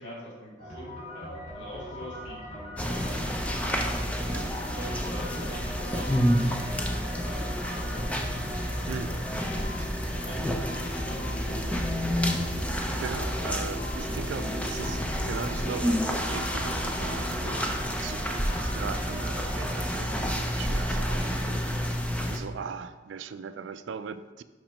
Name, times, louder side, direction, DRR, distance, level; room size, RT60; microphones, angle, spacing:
voice 1, 0.0-4.0 4.6-8.2 9.4-9.6 10.0-11.7, equal, 75° left, -6 dB, 2.3 m, -44 dB
sound 1, 0.6-19.8, left 1 dB, 45° left, 2.4 m, -41 dB
sound 2, 2.8-22.4, equal, 5° left, 0.5 m, -29 dB
voice 2, 4.3-4.8 8.9-9.2 9.8-9.9 12.4-12.6 13.0-17.6 18.0-21.6 22.0-24.4, right 6 dB, 70° right, 11 dB, 0.4 m, -39 dB
sound 3, 10.3-17.6, left 1 dB, 45° right, 0.8 m, -43 dB
5.9 x 5.4 x 5.2 m, 1.3 s
head